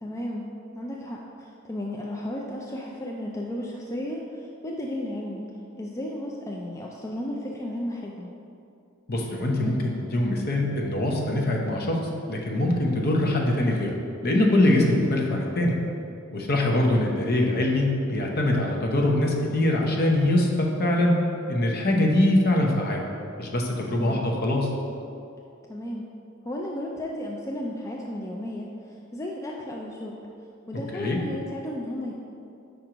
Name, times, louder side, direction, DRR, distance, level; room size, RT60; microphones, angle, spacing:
voice 1, 0.0-0.5 0.7-5.5 5.8-8.3 23.9-24.2 25.7-26.1 26.4-30.3 30.7-32.1, left 1 dB, 15° left, -2 dB, 0.4 m, -34 dB
voice 2, 9.1-12.0 12.3-13.9 14.2-15.8 16.3-21.2 21.5-23.1 23.4-24.7 30.9-31.2, left 1 dB, 50° left, 0 dB, 0.8 m, -23 dB
5.2 x 4.5 x 5.0 m, 2.6 s
head